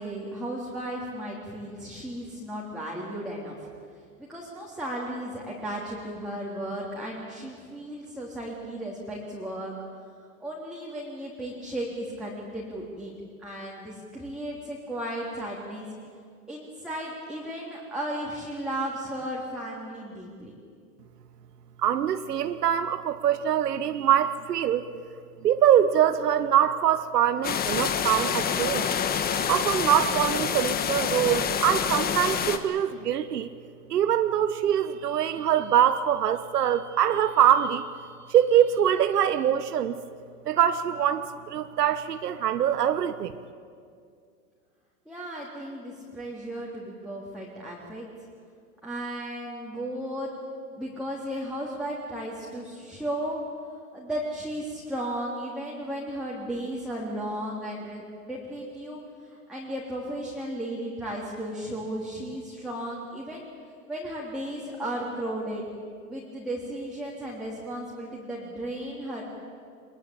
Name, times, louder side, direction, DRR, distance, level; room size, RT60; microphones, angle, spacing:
voice 1, 0.0-3.7 4.2-9.7 10.4-13.1 13.4-15.9 16.5-20.5 45.0-48.1 48.8-50.3 50.7-53.4 53.9-63.5 63.9-65.6 66.0-69.2, right 1 dB, ahead, -5 dB, 3.3 m, -35 dB
voice 2, 21.8-24.8 25.4-28.9 29.5-33.5 33.9-37.8 38.3-40.0 40.5-43.3, right 10 dB, 90° right, 10 dB, 1.1 m, -23 dB
sound 1, 27.4-32.6, left 7 dB, 20° left, 1.3 m, -27 dB
22.5 x 22.0 x 8.8 m, 2.3 s
hypercardioid pair, 130°, 46 cm